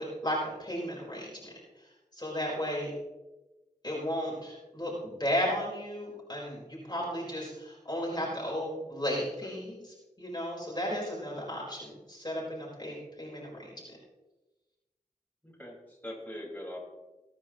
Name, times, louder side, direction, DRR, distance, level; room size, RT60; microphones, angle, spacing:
voice 1, 0.0-2.9 3.8-9.8 10.2-13.7, equal, 30° left, -4 dB, 4.7 m, -34 dB
voice 2, 15.4-16.8, equal, 10° left, -4 dB, 5.3 m, -42 dB
21.5 x 10.0 x 3.1 m, 1.1 s
wide cardioid pair, 45°, 14 cm